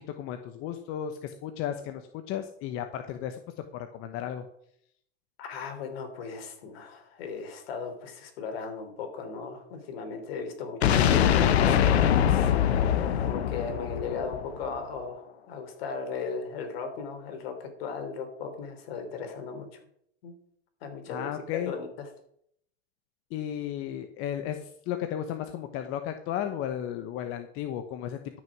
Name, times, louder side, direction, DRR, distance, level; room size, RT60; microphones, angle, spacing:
voice 1, 0.2-4.4 21.1-21.7 23.3-28.2, left 10 dB, 45° left, 7 dB, 1.1 m, -34 dB
voice 2, 5.4-12.5 12.8-19.7 20.2-20.3 20.8-21.9, left 5 dB, 70° left, 6 dB, 3.4 m, -37 dB
sound 1, 10.8-14.8, left 9 dB, 85° left, 1.2 m, -23 dB
13.0 x 6.4 x 6.0 m, 0.69 s
supercardioid pair, 125°, 31 cm